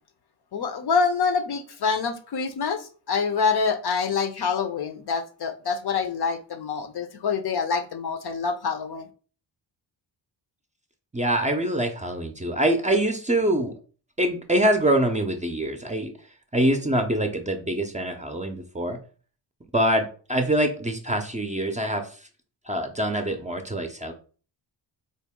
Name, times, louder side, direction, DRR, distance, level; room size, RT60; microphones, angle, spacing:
voice 1, 0.5-9.1, left 5 dB, 50° left, 8 dB, 0.6 m, -26 dB
voice 2, 11.1-13.7 14.2-16.1 16.5-19.0 19.7-22.2 22.7-24.1, right 1 dB, 15° right, 5 dB, 0.6 m, -24 dB
4.0 x 2.1 x 3.6 m, 0.39 s
cardioid pair, 60°, 50 cm